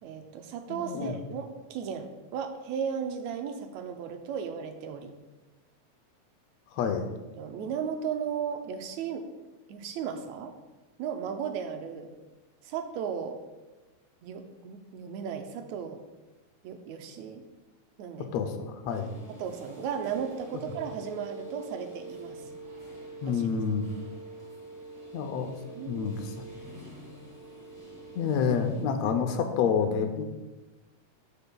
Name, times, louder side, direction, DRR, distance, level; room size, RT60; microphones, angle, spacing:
voice 1, 0.0-5.1 6.8-7.0 7.4-9.3 9.7-10.5 11.0-12.1 12.6-13.4 14.2-16.0 16.6-17.4 18.0-18.3 19.4-22.4 23.2-23.6 25.8-26.3, right 7 dB, 80° right, 6 dB, 1.8 m, -35 dB
voice 2, 0.7-1.1 6.8-7.0 18.3-19.1 23.2-23.9 25.1-25.5 25.9-26.3 28.2-30.2, left 6 dB, 75° left, 6 dB, 1.7 m, -28 dB
sound 1, 18.9-28.8, right 2 dB, 5° right, 1.5 m, -45 dB
13.5 x 5.5 x 2.3 m, 1.1 s
omnidirectional pair, 3.4 m